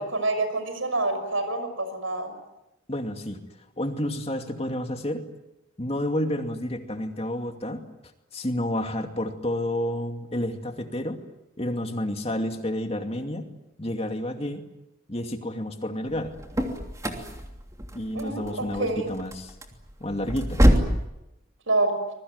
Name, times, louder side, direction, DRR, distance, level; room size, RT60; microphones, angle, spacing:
voice 1, 0.0-2.3 18.1-19.1 21.7-22.0, right 2 dB, 80° right, 9 dB, 6.3 m, -27 dB
voice 2, 2.9-3.4 3.8-5.2 5.8-7.8 8.3-11.2 11.6-13.5 13.8-14.6 15.1-16.3 17.9-19.5 20.0-20.6, left 1 dB, 30° left, 5 dB, 2.4 m, -30 dB
sound 1, 16.1-21.1, equal, 15° right, 3.0 m, -25 dB
26.0 x 22.0 x 9.6 m, 0.91 s
head